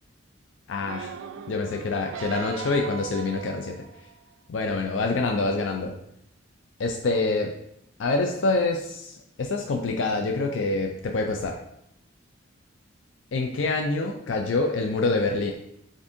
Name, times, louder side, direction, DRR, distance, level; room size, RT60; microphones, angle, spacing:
voice 1, 0.7-1.1 1.5-3.8 4.5-5.9 6.8-7.5 8.0-11.6 13.3-15.5, left 3 dB, 70° left, 2 dB, 0.4 m, -26 dB
sound 1, 0.8-4.3 4.9-5.0, right 8 dB, 75° right, 0.3 m, -39 dB
6.9 x 2.6 x 2.6 m, 0.77 s
head